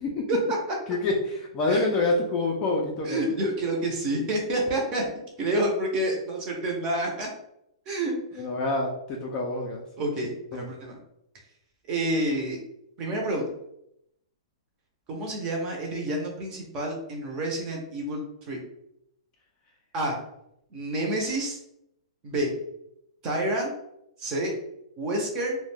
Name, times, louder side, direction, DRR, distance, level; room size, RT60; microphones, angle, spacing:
voice 1, 0.3-0.8 1.7-1.9 3.0-5.0 5.4-7.3 7.9-8.4 10.0-11.0 11.9-12.6 13.0-13.4 15.1-18.6 19.9-20.2 20.7-21.6 22.2-22.5 23.2-23.7 24.2-24.5 25.0-25.6, right 1 dB, 25° right, 0 dB, 0.6 m, -28 dB
voice 2, 0.9-3.2 8.3-9.8 10.5-10.7, left 2 dB, 20° left, -1 dB, 0.3 m, -27 dB
2.3 x 2.1 x 3.2 m, 0.78 s
hypercardioid pair, 165°, 3 cm